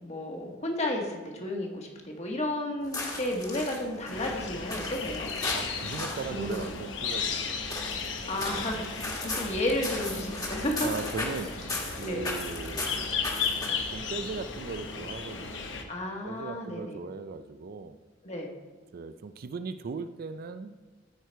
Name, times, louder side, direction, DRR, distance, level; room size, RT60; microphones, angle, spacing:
voice 1, 0.0-5.3 6.3-6.6 8.3-10.9 12.1-12.3 15.9-17.0 18.2-18.5, left 1 dB, 35° left, 1.4 m, -32 dB
sound 1, 2.8-14.0, left 2 dB, 20° left, 1.5 m, -37 dB
sound 2, 4.1-15.8, left 5 dB, 70° left, 1.0 m, -35 dB
voice 2, 5.5-7.8 8.6-8.9 9.2-9.4 10.8-13.2 13.9-16.0 16.2-18.0 18.9-20.8, right 4 dB, 50° right, 0.4 m, -38 dB
13.5 x 4.7 x 4.5 m
head